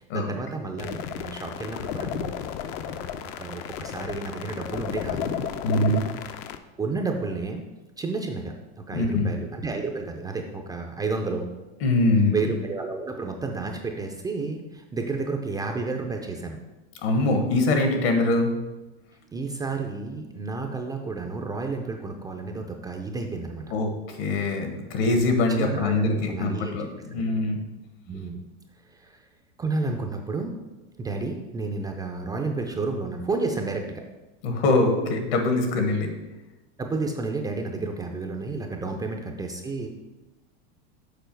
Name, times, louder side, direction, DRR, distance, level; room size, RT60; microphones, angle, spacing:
voice 1, 0.0-2.3 2.8-3.1 3.4-5.4 6.8-7.6 8.0-8.5 8.9-11.5 12.3-16.6 19.3-23.7 25.5-27.2 28.1-28.4 28.9-29.2 29.6-30.6 31.0-34.0 36.8-39.9, right 3 dB, 10° right, 3 dB, 0.4 m, -31 dB
sound 1, 0.8-6.6, left 9 dB, 45° left, 0.5 m, -33 dB
voice 2, 5.6-6.0 8.9-9.3 11.8-12.4 17.0-18.5 23.7-27.6 34.4-36.1, left 2 dB, 70° left, 5 dB, 1.4 m, -23 dB
6.9 x 4.7 x 4.5 m, 1.1 s
supercardioid pair, 135°, 32 cm